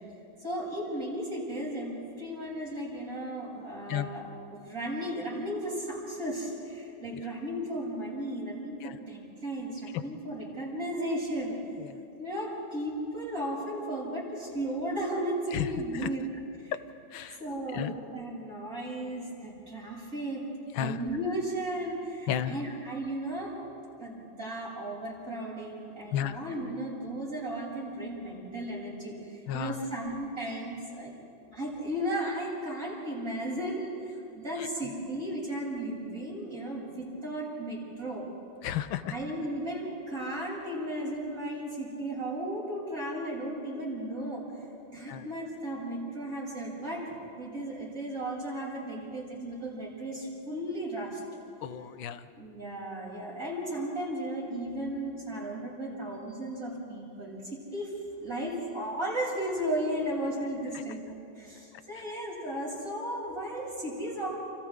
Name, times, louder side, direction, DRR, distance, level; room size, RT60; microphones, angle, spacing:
voice 1, 0.4-11.5 12.2-16.3 16.6-16.7 17.4-20.4 20.8-23.5 24.0-31.2 31.5-38.3 39.0-44.4 44.9-47.0 47.3-51.2 52.4-57.9 58.2-61.0 61.3-64.3, right 1 dB, 45° right, -7 dB, 7.9 m, -35 dB
voice 2, 15.5-16.1 17.1-17.4 17.7-18.0 20.7-21.0 22.3-22.6 26.1-26.4 29.5-29.9 34.6-34.7 38.6-39.1 45.1-45.3 51.6-52.3 60.7-60.8, left 10 dB, 90° left, 11 dB, 1.6 m, -33 dB
29.5 x 29.5 x 3.6 m, 2.7 s
omnidirectional pair, 2.1 m